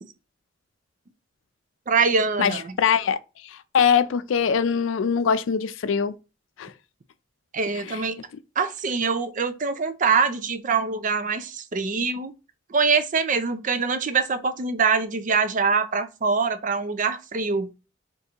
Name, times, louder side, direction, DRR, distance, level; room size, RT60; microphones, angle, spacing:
voice 1, 1.9-2.7 7.5-8.2 8.6-12.3 12.7-17.7, right 5 dB, 40° right, 0.5 m, -24 dB
voice 2, 2.4-3.2 3.4-6.2 6.6-6.7 7.8-8.0, left 7 dB, 90° left, 0.4 m, -22 dB
4.3 x 2.6 x 3.5 m
head